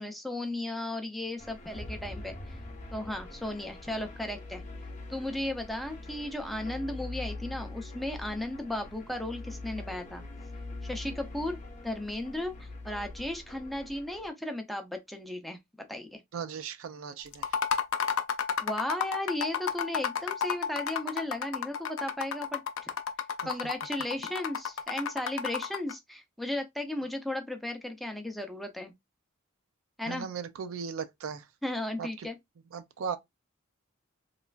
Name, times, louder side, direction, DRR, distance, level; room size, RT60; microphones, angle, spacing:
voice 1, 0.0-2.4 2.9-4.6 5.1-10.2 10.8-16.2 18.6-22.9 23.4-28.9 30.0-30.3 31.6-32.4, left 1 dB, ahead, 0.5 m, -35 dB
sound 1, 1.4-14.3, left 2 dB, 35° left, 0.7 m, -43 dB
voice 2, 16.3-17.6 30.1-31.5 32.0-32.3 32.7-33.2, right 6 dB, 70° right, 0.4 m, -37 dB
sound 2, 17.3-25.9, left 7 dB, 70° left, 0.5 m, -32 dB
3.1 x 2.4 x 2.4 m
head